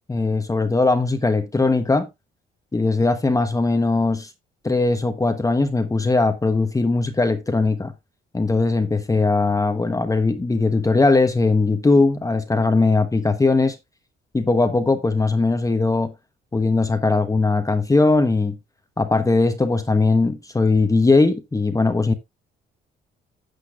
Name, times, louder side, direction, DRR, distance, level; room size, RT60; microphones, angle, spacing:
voice 1, 0.1-2.1 2.7-4.3 4.6-7.9 8.3-13.8 14.3-16.1 16.5-18.6 19.0-22.1, left 3 dB, 15° left, 1.0 m, -19 dB
13.0 x 8.0 x 2.4 m
cardioid pair, 90°, 20 cm